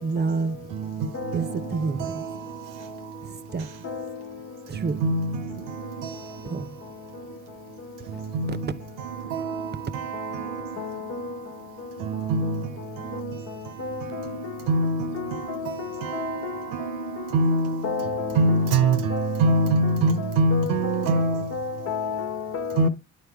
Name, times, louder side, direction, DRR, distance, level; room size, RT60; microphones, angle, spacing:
voice 1, 0.0-1.0 1.3-2.3 3.2-3.7 4.7-5.0 6.5-6.7 8.5-8.6, right 4 dB, 35° right, 0.7 m, -29 dB
voice 2, 5.0-5.6 8.3-8.5 9.3-9.4 12.3-12.6 14.7-15.4 16.7-17.8 18.4-21.4 22.8-22.9, right 2 dB, 85° right, 0.9 m, -22 dB
voice 3, 17.8-18.3 19.1-19.3 20.5-20.7 21.2-21.3 21.5-22.9, left 5 dB, 50° left, 1.3 m, -29 dB
9.6 x 4.4 x 3.5 m
supercardioid pair, 70°, 31 cm